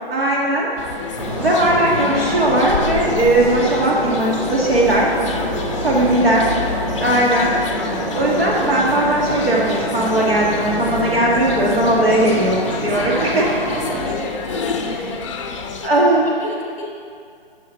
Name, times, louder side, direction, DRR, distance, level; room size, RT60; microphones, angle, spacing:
voice 1, 0.1-0.7 1.4-5.1 5.8-6.5 7.0-7.6 8.1-13.4 15.8-16.3, right 1 dB, 70° right, -4 dB, 2.1 m, -18 dB
sound 1, 0.8-15.9, left 6 dB, 30° left, 0.5 m, -29 dB
sound 2, 1.1-14.1, right 1 dB, 35° right, 2.0 m, -26 dB
voice 2, 5.8-6.3 12.9-16.1 16.4-16.8, left 1 dB, 5° left, -2 dB, 1.5 m, -32 dB
9.1 x 6.6 x 5.6 m, 2.4 s
figure-of-eight pair, 140°, 31 cm